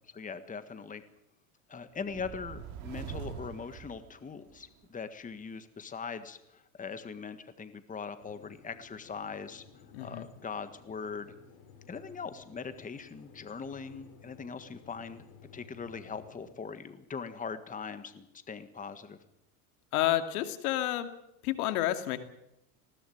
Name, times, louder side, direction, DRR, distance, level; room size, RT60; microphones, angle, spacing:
voice 1, 0.1-1.0 1.7-9.6 10.0-11.3 11.9-15.2 15.5-19.2, left 5 dB, 15° left, 11 dB, 1.6 m, -41 dB
sound 1, 2.0-4.7, right 8 dB, 60° right, 2.9 m, -43 dB
sound 2, 8.2-16.5, left 6 dB, 55° left, 6.3 m, -55 dB
voice 2, 9.9-10.3 19.9-21.1 21.4-22.2, left 13 dB, 75° left, 8 dB, 2.7 m, -29 dB
20.0 x 17.0 x 9.4 m, 0.82 s
supercardioid pair, 110°, 44 cm